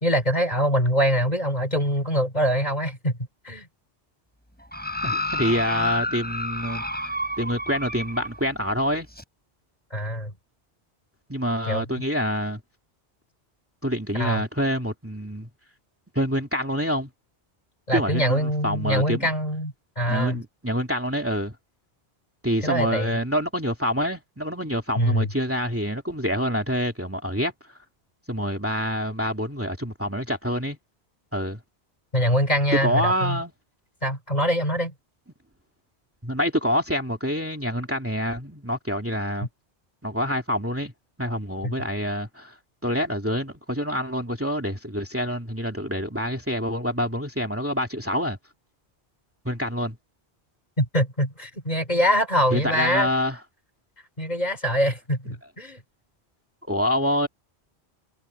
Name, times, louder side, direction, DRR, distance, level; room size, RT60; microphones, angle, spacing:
voice 1, 0.0-3.1 3.4-3.7 9.9-10.3 11.7-11.8 14.1-14.4 17.9-20.4 22.6-23.2 25.0-25.3 32.1-33.4 34.0-34.9 41.6-41.7 50.8-53.1 54.2-55.8, equal, 40° left, 4.1 m, -24 dB
sound 1, 4.7-8.4 9.2-9.3, left 1 dB, 10° left, 4.6 m, -29 dB
voice 2, 5.0-7.1 7.4-9.1 11.3-12.6 13.8-15.5 16.1-17.1 17.9-19.3 20.1-21.5 22.4-27.5 28.3-30.8 31.3-31.6 32.8-33.5 36.2-39.5 40.0-40.9 41.2-42.5 42.8-48.4 49.4-50.0 52.5-53.4 56.7-57.3, equal, 10° right, 2.6 m, -26 dB
omnidirectional pair, 1.1 m